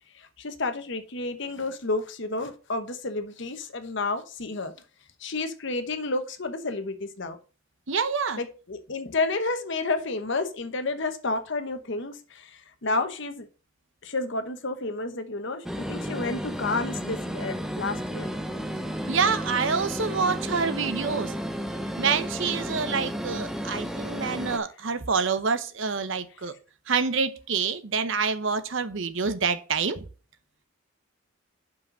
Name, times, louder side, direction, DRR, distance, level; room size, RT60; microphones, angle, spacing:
voice 1, 0.2-4.7 5.2-7.4 8.4-13.5 14.0-18.3, left 3 dB, 55° left, 1.0 m, -30 dB
voice 2, 7.9-8.4 19.1-21.3 22.0-26.5 26.9-30.1, right 5 dB, 60° right, 0.8 m, -27 dB
sound 1, 15.6-24.6, equal, ahead, 0.6 m, -32 dB
5.7 x 5.2 x 6.3 m
head